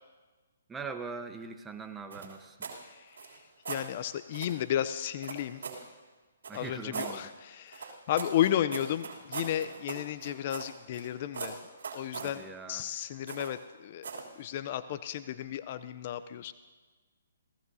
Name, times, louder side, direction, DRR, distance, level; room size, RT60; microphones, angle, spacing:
voice 1, 0.7-2.7 6.5-7.3 12.2-12.9, right 4 dB, 10° right, 7 dB, 1.0 m, -42 dB
sound 1, 2.1-2.8 3.1-3.9 4.3-4.6 5.2-5.9 6.4-7.2 7.7-11.1 11.3-12.4 13.3-13.6 14.0-14.3, right 5 dB, 70° right, 3.1 m, -40 dB
voice 2, 2.8-3.4 3.7-5.6 6.5-11.6 11.9-16.5, left 11 dB, 45° left, 13 dB, 0.5 m, -33 dB
26.5 x 16.5 x 2.8 m, 1.3 s
hypercardioid pair, 140°, 0 cm